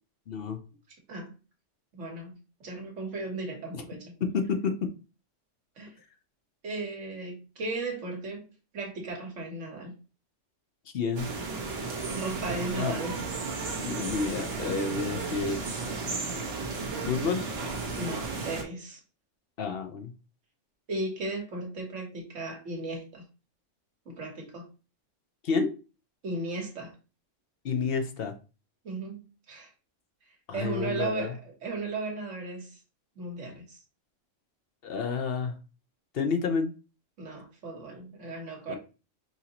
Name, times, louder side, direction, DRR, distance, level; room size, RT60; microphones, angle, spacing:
voice 1, 0.3-0.6 3.7-3.8 4.2-4.9 10.9-11.3 12.7-13.0 13.8-15.6 17.0-17.4 19.6-20.1 25.4-25.7 27.6-28.3 30.5-31.3 34.8-35.5 36.1-36.7 38.7-38.8, left 5 dB, 55° left, 0.9 m, -29 dB
voice 2, 1.9-4.2 5.8-6.0 6.6-8.5 8.7-9.9 12.1-13.2 14.7-14.9 17.9-19.0 20.9-23.2 24.0-24.7 26.2-26.9 28.8-29.7 30.5-32.8 33.1-33.8 37.2-38.8, right 2 dB, 75° right, 1.6 m, -36 dB
sound 1, 11.2-18.6, right 3 dB, 55° right, 1.1 m, -34 dB
5.6 x 2.7 x 2.9 m
omnidirectional pair, 1.3 m